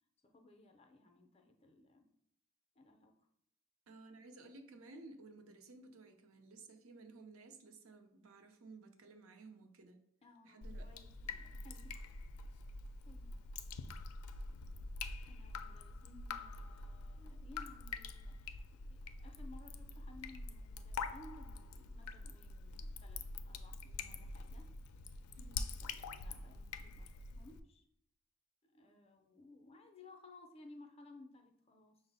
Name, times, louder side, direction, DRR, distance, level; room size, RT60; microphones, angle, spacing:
voice 1, 0.2-2.1 2.8-3.2 10.2-12.0 13.0-13.3 15.3-24.7 25.8-27.8 28.6-32.0, left 2 dB, 25° left, 4 dB, 0.4 m, -59 dB
voice 2, 3.9-10.0 10.4-10.9 25.4-25.8, right 3 dB, 70° right, 6 dB, 0.6 m, -56 dB
Drip, 10.6-27.6, left 4 dB, 90° left, 0.4 m, -46 dB
5.8 x 2.0 x 4.0 m, 0.72 s
head